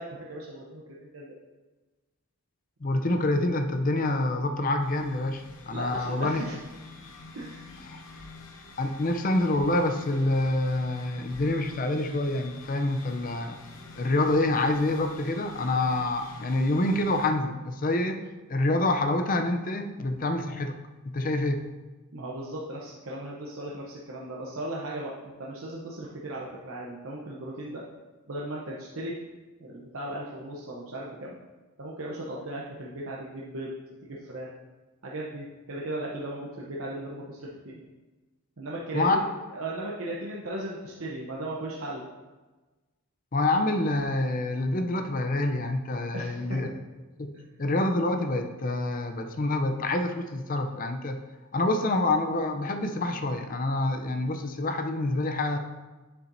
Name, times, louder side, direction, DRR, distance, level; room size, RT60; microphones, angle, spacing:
voice 1, 0.0-1.3 5.7-6.6 7.3-7.7 22.1-27.8 28.3-29.2 29.6-31.4 31.8-34.5 35.0-37.8 38.6-39.2 39.5-42.1 46.1-46.6, right 1 dB, 65° right, -4 dB, 0.8 m, -37 dB
voice 2, 2.8-6.4 7.9-8.0 8.8-13.6 14.0-18.2 18.5-20.8 21.0-21.6 38.9-39.2 43.3-46.7 47.2-47.3 47.6-51.2 51.5-55.6, left 2 dB, 40° left, 6 dB, 0.5 m, -27 dB
sound 1, 4.8-17.3, left 3 dB, 65° left, 0.9 m, -47 dB
7.2 x 6.9 x 2.6 m, 1.2 s
head